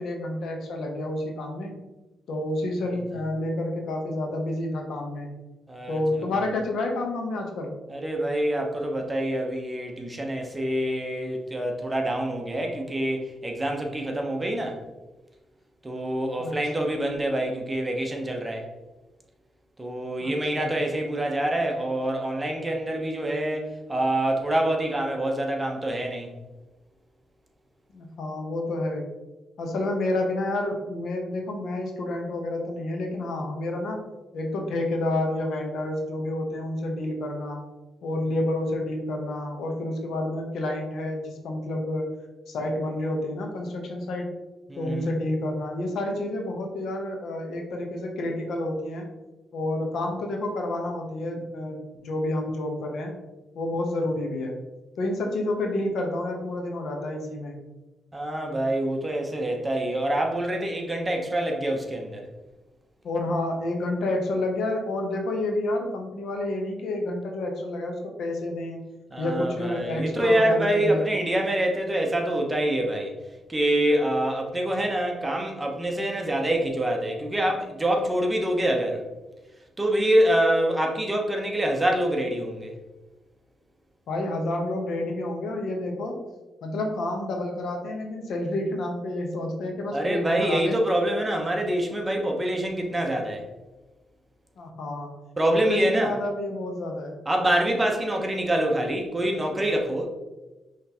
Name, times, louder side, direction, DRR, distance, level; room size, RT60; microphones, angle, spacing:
voice 1, 0.0-1.8 2.3-5.3 5.9-7.7 16.4-16.5 16.8-16.9 20.2-20.7 27.9-29.1 29.6-34.0 34.3-37.6 38.0-42.1 42.5-44.3 44.8-49.1 49.5-53.1 53.5-54.6 55.0-57.6 63.0-68.8 69.2-71.1 84.1-86.2 86.6-90.8 94.6-95.1 95.5-97.2, left 1 dB, 75° left, 2 dB, 0.9 m, -29 dB
voice 2, 5.7-6.3 7.9-14.8 15.8-18.7 19.8-26.3 44.7-45.1 58.1-62.3 69.1-73.1 73.5-79.0 79.8-82.7 89.9-93.4 95.4-96.1 97.3-100.1, right 1 dB, 15° right, 2 dB, 0.8 m, -26 dB
5.7 x 3.2 x 2.9 m, 1.1 s
cardioid pair, 110°, 0 cm